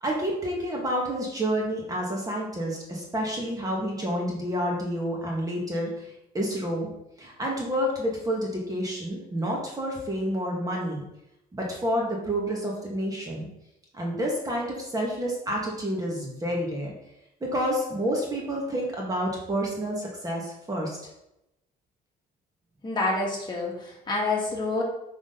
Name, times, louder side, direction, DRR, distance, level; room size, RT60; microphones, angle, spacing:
voice 1, 0.0-6.9 7.2-11.0 11.5-13.5 13.9-16.9 17.4-21.0, equal, 20° right, -2 dB, 2.0 m, -29 dB
voice 2, 22.8-24.8, left 2 dB, 25° left, -3 dB, 2.5 m, -28 dB
6.4 x 6.1 x 4.0 m, 0.84 s
cardioid pair, 110°, 17 cm